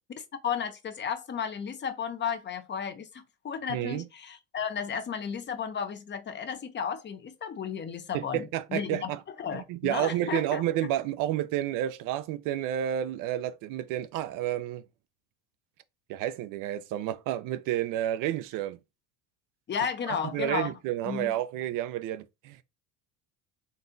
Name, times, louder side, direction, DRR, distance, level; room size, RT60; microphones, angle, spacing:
voice 1, 0.4-9.1 9.4-10.6 19.7-20.7 21.0-21.3, left 7 dB, 30° left, 0.7 m, -33 dB
voice 2, 3.7-4.1 8.1-9.2 9.5-14.8 16.1-18.8 20.1-22.6, right 12 dB, 65° right, 0.6 m, -30 dB
4.1 x 3.3 x 2.6 m
supercardioid pair, 95°, 35 cm